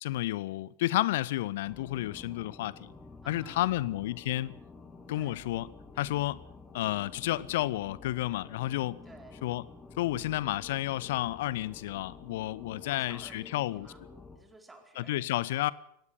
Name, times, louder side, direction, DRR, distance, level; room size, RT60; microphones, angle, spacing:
voice 1, 0.0-2.9 3.3-4.5 5.1-5.7 6.0-6.4 6.7-9.0 9.4-9.6 10.0-13.9 15.0-15.7, left 15 dB, 55° left, 0.8 m, -31 dB
sound 1, 1.6-14.4, left 3 dB, 10° left, 3.3 m, -50 dB
voice 2, 3.2-3.8 5.1-5.4 9.0-9.5 12.8-14.1 14.3-15.7, right 2 dB, 10° right, 4.4 m, -55 dB
24.0 x 18.0 x 6.8 m
figure-of-eight pair, 90°, 0 cm